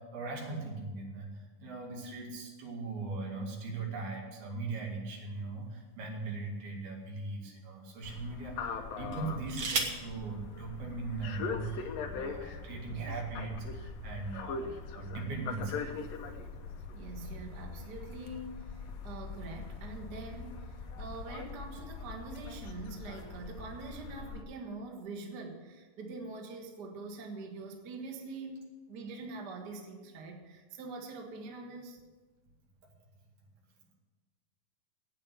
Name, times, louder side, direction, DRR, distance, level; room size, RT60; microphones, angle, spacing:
voice 1, 0.0-15.9 17.1-17.3 32.8-32.9, right 3 dB, 90° right, -1 dB, 4.2 m, -39 dB
sound 1, 5.3-6.5 7.3-7.4 9.1-10.1 11.3-11.4 11.7-12.1, right 4 dB, 65° right, 1.2 m, -36 dB
sound 2, 8.0-24.4, left 4 dB, 80° left, 1.5 m, -42 dB
voice 2, 16.9-32.0, right 3 dB, 50° right, 2 dB, 1.2 m, -44 dB
8.8 x 8.7 x 9.1 m, 1.3 s
omnidirectional pair, 4.3 m